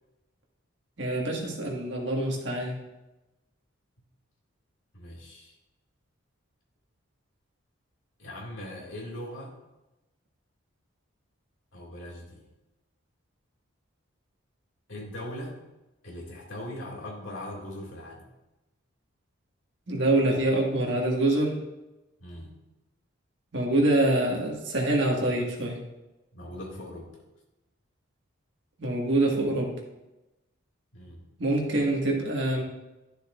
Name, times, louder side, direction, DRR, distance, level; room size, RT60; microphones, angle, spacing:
voice 1, 1.0-2.8 19.9-21.6 23.5-25.8 28.8-29.7 31.4-32.6, right 1 dB, 55° right, -1 dB, 1.7 m, -25 dB
voice 2, 4.9-5.5 8.2-9.6 11.7-12.5 14.9-15.6 16.0-18.3 22.2-22.5 26.3-27.1 30.9-31.2, left 1 dB, 65° left, -2 dB, 2.2 m, -40 dB
12.0 x 6.8 x 2.5 m, 0.99 s
head